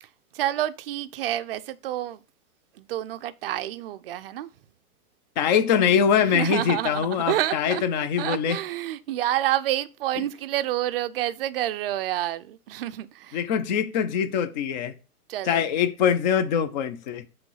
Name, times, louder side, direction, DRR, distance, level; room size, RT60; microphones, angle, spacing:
voice 1, 0.3-2.2 2.7-4.5 6.2-13.4 15.3-15.6, right 13 dB, 40° right, 0.4 m, -29 dB
voice 2, 5.4-8.6 13.3-14.9 15.5-17.3, left 8 dB, 30° left, 0.5 m, -23 dB
7.0 x 3.2 x 5.5 m
hypercardioid pair, 135°, 45 cm